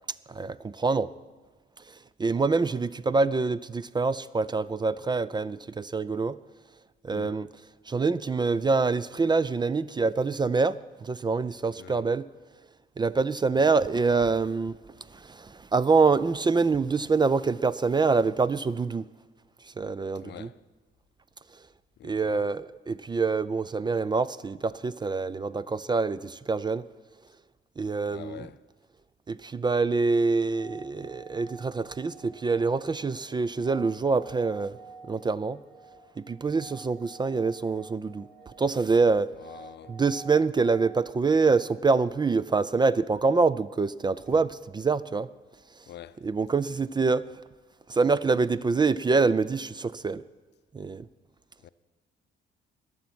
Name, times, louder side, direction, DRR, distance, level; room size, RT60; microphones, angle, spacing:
voice 1, 0.3-1.1 2.2-6.4 7.0-7.5 7.9-12.3 13.0-14.8 15.3-19.0 19.8-20.5 22.0-26.8 27.8-28.5 29.3-34.7 35.1-35.6 36.2-38.3 38.6-39.3 39.9-45.3 46.2-47.3 47.9-50.2 50.7-51.1, right 4 dB, 20° right, 0.4 m, -25 dB
voice 2, 7.1-7.4 11.8-12.1 20.2-20.6 22.0-22.5 28.0-28.6 39.4-40.0 44.3-44.4 45.9-46.2 51.6-51.7, left 11 dB, 60° left, 0.6 m, -45 dB
sound 1, 30.1-42.9, right 4 dB, 70° right, 4.1 m, -50 dB
20.5 x 7.2 x 6.1 m
cardioid pair, 90°, 20 cm